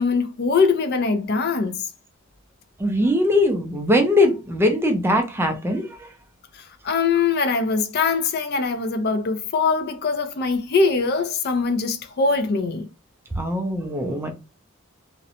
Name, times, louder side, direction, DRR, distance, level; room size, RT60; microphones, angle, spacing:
voice 1, 0.0-1.8 6.5-12.9, left 4 dB, 50° left, 0.4 m, -22 dB
voice 2, 2.8-6.0 13.4-14.3, left 1 dB, 10° right, 0.4 m, -21 dB
2.5 x 2.0 x 2.8 m
head